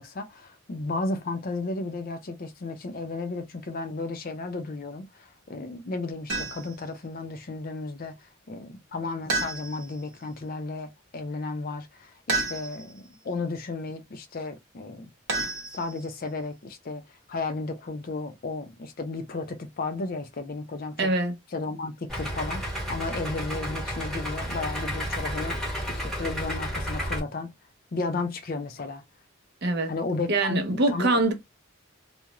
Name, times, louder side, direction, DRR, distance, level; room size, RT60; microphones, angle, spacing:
voice 1, 0.0-15.1 15.7-21.1 21.5-25.6 25.9-27.5 27.9-29.0 29.9-31.3, left 3 dB, 45° left, 0.5 m, -34 dB
sound 1, 6.3-6.8 9.3-10.0 12.3-13.0 15.3-16.2, right 3 dB, 65° right, 1.0 m, -30 dB
voice 2, 21.0-21.3 29.6-29.9 30.3-31.3, right 2 dB, 50° right, 0.6 m, -24 dB
Idling, 22.1-27.2, equal, ahead, 0.8 m, -32 dB
2.3 x 2.0 x 2.9 m
head